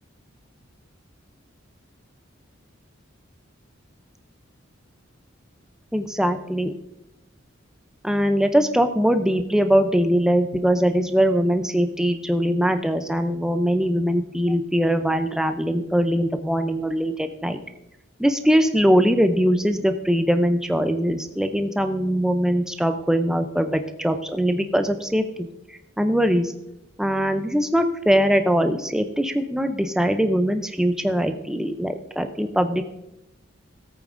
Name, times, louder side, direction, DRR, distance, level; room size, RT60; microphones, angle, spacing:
voice 1, 5.9-6.7 8.0-17.6 18.2-26.5 27.0-32.8, equal, 5° right, 7 dB, 0.4 m, -21 dB
17.0 x 8.7 x 2.5 m, 0.88 s
head